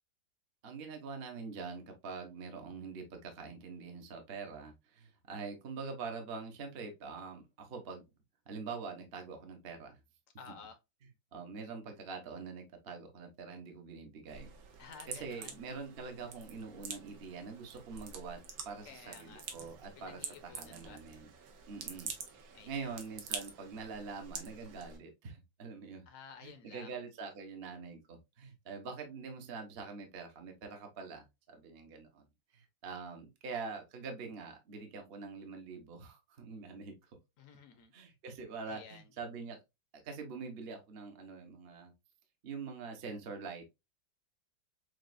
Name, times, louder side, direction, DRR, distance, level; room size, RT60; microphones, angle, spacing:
voice 1, 0.6-8.0 8.5-10.0 11.3-14.5 15.1-21.3 21.7-26.0 26.4-32.3 32.5-37.1 37.9-39.6 40.0-41.9 42.4-43.7, right 4 dB, 50° right, 0.7 m, -45 dB
voice 2, 10.4-10.8 14.8-15.6 18.8-19.4 20.0-21.0 22.5-23.0 26.1-27.0 37.4-37.9 38.7-39.1, left 6 dB, 60° left, 0.8 m, -53 dB
sound 1, 14.3-25.0, right 6 dB, 85° right, 1.6 m, -47 dB
6.2 x 2.3 x 2.5 m
omnidirectional pair, 2.1 m